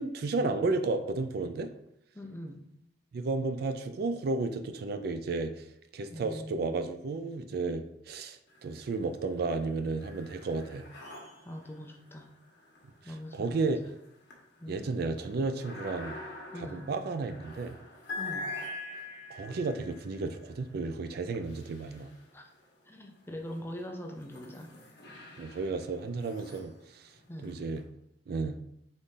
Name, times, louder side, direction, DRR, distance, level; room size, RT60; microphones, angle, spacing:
voice 1, 0.0-1.7 3.1-5.7 5.9-10.9 13.3-13.8 14.7-16.2 16.5-17.7 19.3-22.1 25.4-27.1 27.4-27.8 28.3-28.6, right 3 dB, 55° right, 8 dB, 0.3 m, -33 dB
voice 2, 2.1-2.6 6.1-6.7 11.4-12.3 13.0-13.7 14.6-14.9 16.5-16.9 18.2-18.5 22.3-22.5 22.9-24.7 27.3-27.6, equal, 10° left, 2 dB, 0.5 m, -42 dB
sound 1, 8.5-9.2 9.5-22.7 23.3-27.8, left 2 dB, 65° left, 1.1 m, -46 dB
4.0 x 3.5 x 3.7 m, 0.77 s
head